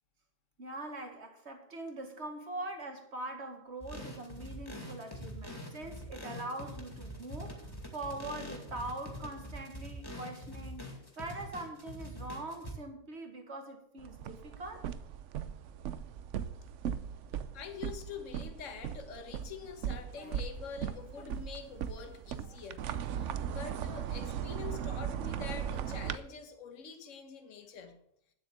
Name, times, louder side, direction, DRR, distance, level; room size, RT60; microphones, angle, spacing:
voice 1, 0.6-14.9, right 2 dB, 40° right, 2.1 m, -43 dB
sound 1, 3.8-12.7, equal, 15° left, 2.4 m, -44 dB
sound 2, 14.0-26.2, right 9 dB, 60° right, 0.8 m, -38 dB
voice 2, 17.5-22.8 23.1-28.0, left 6 dB, 50° left, 1.5 m, -45 dB
Speech, 19.9-21.6 21.9-23.3 23.7-24.7 25.2-26.0, left 3 dB, 80° left, 2.8 m, -62 dB
9.5 x 8.1 x 7.6 m
omnidirectional pair, 1.7 m